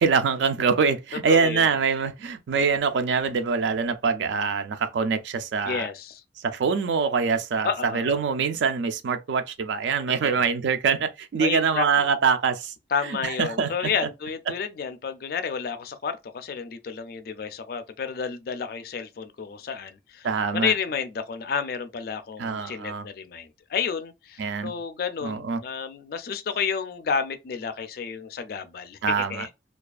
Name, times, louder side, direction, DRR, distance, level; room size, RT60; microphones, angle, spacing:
voice 1, 0.0-5.9 6.4-12.7 13.2-13.9 20.2-20.7 22.4-23.0 24.4-24.7 25.2-25.6 29.0-29.5, right 5 dB, 75° right, 0.4 m, -24 dB
voice 2, 1.3-1.7 5.6-6.2 7.6-8.2 10.2-10.5 11.4-12.1 12.9-20.3 20.5-29.5, left 6 dB, 55° left, 0.3 m, -31 dB
2.3 x 2.3 x 2.4 m
head